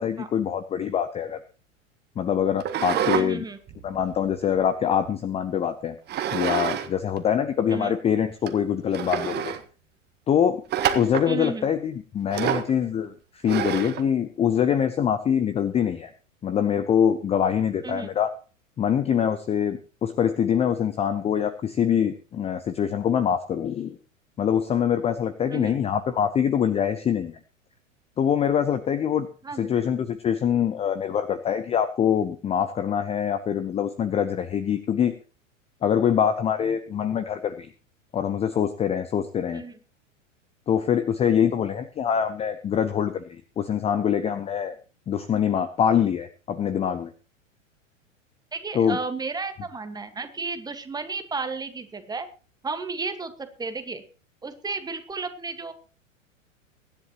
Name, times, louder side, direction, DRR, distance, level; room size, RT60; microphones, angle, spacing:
voice 1, 0.0-1.4 2.2-3.4 3.8-5.9 6.3-9.6 10.3-10.6 10.9-16.1 16.4-18.3 18.8-24.0 24.4-27.4 28.2-29.3 29.6-35.1 35.8-37.7 38.1-39.6 40.7-44.7 45.1-47.1 48.7-49.0, left 8 dB, 15° left, 12 dB, 0.7 m, -24 dB
sound 1, 2.6-3.3 3.7-5.1 6.1-6.9 7.2-7.3 7.9-8.0 8.5-8.6 8.9-9.6 10.7-11.3 12.3-12.7 13.5-14.0, right 9 dB, 25° right, 1.4 m, -27 dB
voice 2, 3.1-3.6 7.7-7.9 11.3-11.7 17.8-18.1 25.5-25.8 29.4-29.9 39.5-39.8 48.5-52.3 52.6-54.0 54.4-55.7, right 4 dB, 10° right, 9 dB, 1.6 m, -33 dB
23.0 x 10.5 x 3.0 m, 0.36 s
figure-of-eight pair, 95°, 39 cm